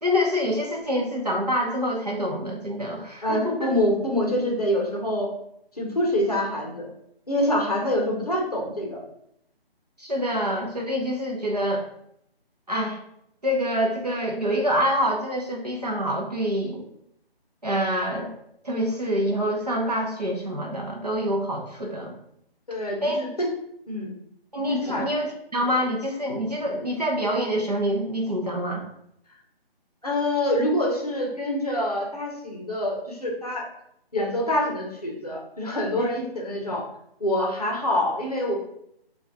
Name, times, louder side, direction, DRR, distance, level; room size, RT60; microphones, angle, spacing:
voice 1, 0.0-3.7 10.0-11.8 12.7-13.0 13.4-16.8 17.6-18.3 18.6-22.1 23.0-23.2 24.5-28.8, equal, 40° right, -1 dB, 0.6 m, -26 dB
voice 2, 3.2-5.3 5.8-6.9 7.3-9.0 21.8-21.9 22.7-23.5 23.9-24.1 24.8-25.0 30.0-33.6 34.1-36.8 37.2-38.6, left 1 dB, 40° left, -1 dB, 0.7 m, -26 dB
4.0 x 2.3 x 3.4 m, 0.76 s
figure-of-eight pair, 175°, 31 cm